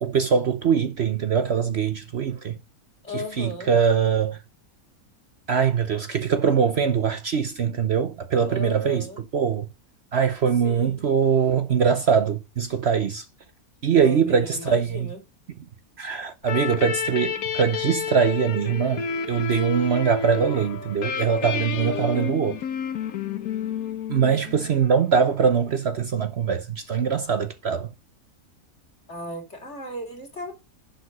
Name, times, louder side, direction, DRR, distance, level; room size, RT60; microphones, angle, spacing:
voice 1, 0.0-2.6 3.1-4.4 5.5-9.7 10.1-13.3 13.8-15.1 16.0-22.6 24.1-27.9, right 6 dB, 55° right, 0.9 m, -22 dB
voice 2, 3.0-3.7 8.5-9.2 10.6-11.0 14.0-15.2 21.7-22.4 29.1-30.5, left 1 dB, 50° left, 3.5 m, -36 dB
sound 1, 16.4-24.9, left 6 dB, 75° left, 1.4 m, -31 dB
10.5 x 4.8 x 5.3 m
omnidirectional pair, 1.5 m